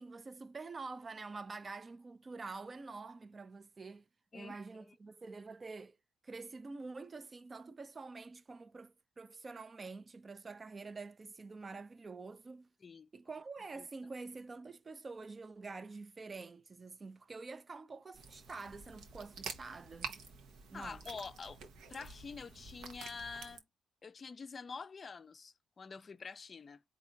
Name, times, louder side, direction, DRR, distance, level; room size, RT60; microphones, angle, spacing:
voice 1, 0.0-4.0 4.3-6.0 6.2-12.7 13.1-20.2 20.7-21.0, right 3 dB, 30° right, 0.4 m, -47 dB
sound 1, 18.1-23.6, right 5 dB, 80° right, 1.0 m, -49 dB
voice 2, 20.7-21.6 21.9-23.6 24.0-26.8, left 5 dB, 40° left, 0.4 m, -47 dB
4.1 x 2.6 x 3.8 m
cardioid pair, 90°, 0 cm